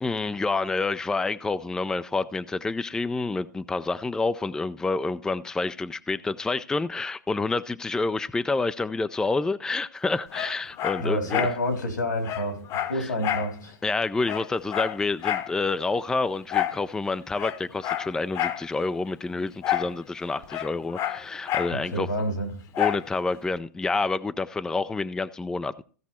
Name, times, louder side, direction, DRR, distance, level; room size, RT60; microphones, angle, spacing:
voice 1, 0.0-11.4 12.9-13.1 13.8-22.1 22.8-25.8, left 3 dB, 5° left, 0.4 m, -28 dB
Dog, 10.3-11.6 11.9-12.0 12.2-13.5 13.9-14.0 14.2-15.5 16.5-16.8 17.3-18.6 19.6-20.0 20.2-21.8 22.7-23.1 23.6-23.7, left 12 dB, 35° left, 1.0 m, -29 dB
voice 2, 11.0-13.8 21.7-22.5, equal, 85° left, 4.1 m, -28 dB
16.0 x 6.0 x 4.3 m
hypercardioid pair, 120°, 10 cm